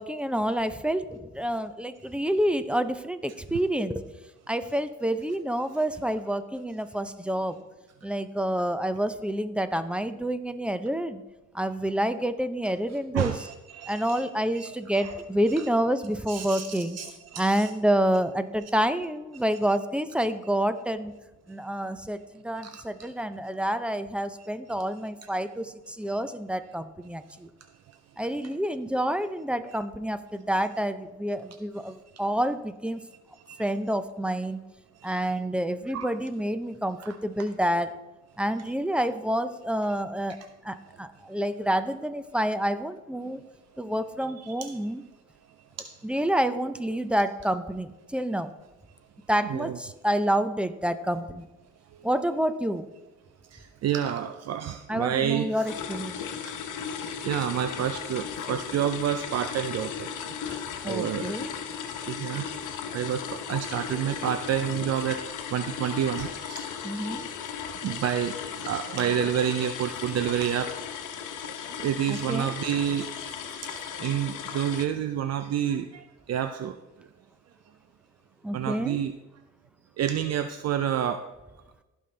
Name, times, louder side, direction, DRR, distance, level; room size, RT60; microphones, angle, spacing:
voice 1, 0.0-4.1 4.5-7.6 8.0-11.2 11.5-13.4 13.9-17.0 17.4-21.1 21.5-27.5 28.2-33.1 33.6-34.6 35.0-38.0 38.4-43.4 43.8-45.0 46.0-48.5 49.3-51.4 52.0-52.9 54.9-56.2 60.8-61.5 66.8-67.3 72.1-72.5 78.4-79.0, right 1 dB, 5° right, 11 dB, 0.5 m, -28 dB
voice 2, 13.1-14.2 14.5-14.7 14.9-15.1 15.6-15.7 16.3-17.7 22.6-23.1 27.9-28.0 31.9-32.0 33.5-33.7 35.0-35.1 35.9-36.1 37.0-37.2 44.6-44.8 45.8-45.9 49.5-49.8 51.9-52.1 53.4-55.7 56.4-61.4 62.1-65.2 65.5-67.1 67.8-70.7 71.4-73.3 73.6-77.1 78.5-79.1 80.0-81.2, right 9 dB, 60° right, 9 dB, 0.5 m, -30 dB
sound 1, 55.7-74.9, left 7 dB, 80° left, 1.0 m, -36 dB
15.0 x 5.5 x 3.3 m, 1.1 s
cardioid pair, 90°, 30 cm